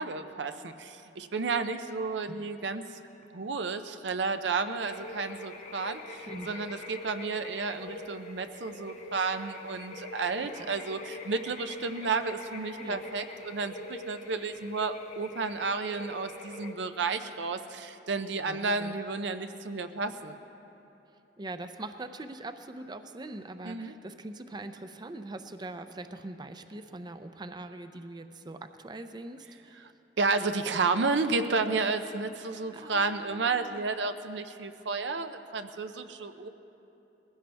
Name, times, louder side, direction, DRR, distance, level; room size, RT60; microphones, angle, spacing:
voice 1, 0.0-2.9 3.3-20.4 23.6-23.9 30.2-36.5, right 4 dB, 90° right, 9 dB, 0.6 m, -32 dB
sound 1, 4.8-16.7, left 2 dB, 45° left, 0.8 m, -44 dB
voice 2, 6.3-6.6 7.8-7.9 10.4-10.7 12.8-13.0 18.5-18.9 21.4-29.9 32.7-33.8, right 2 dB, 25° right, 9 dB, 0.5 m, -42 dB
20.5 x 16.0 x 3.4 m, 2.9 s
head